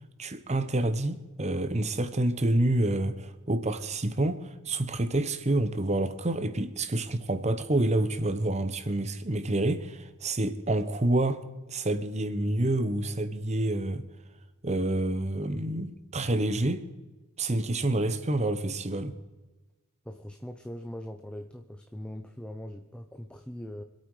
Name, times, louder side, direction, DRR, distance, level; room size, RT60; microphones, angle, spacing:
voice 1, 0.2-11.4 11.7-14.0 14.6-16.8 17.4-19.1, right 1 dB, 30° right, 11 dB, 1.0 m, -28 dB
voice 2, 20.0-23.8, left 1 dB, 5° left, 6 dB, 0.6 m, -41 dB
25.5 x 8.6 x 4.9 m, 1.2 s
head